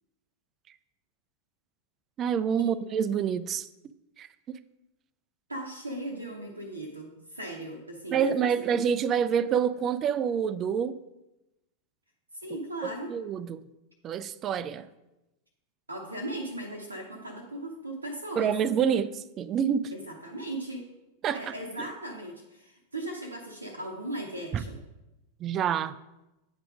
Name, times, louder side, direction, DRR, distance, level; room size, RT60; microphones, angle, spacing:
voice 1, 2.2-3.7 4.2-4.3 8.1-11.0 13.1-13.7 14.0-14.9 18.4-19.9 21.2-21.9 24.5-24.6 25.4-25.9, right 8 dB, 30° right, 0.3 m, -27 dB
voice 2, 5.5-8.8 12.3-13.2 15.9-18.6 19.9-20.8 21.3-24.8, right 1 dB, 80° right, 0.7 m, -38 dB
8.9 x 3.5 x 4.9 m
figure-of-eight pair, 90°, 0 cm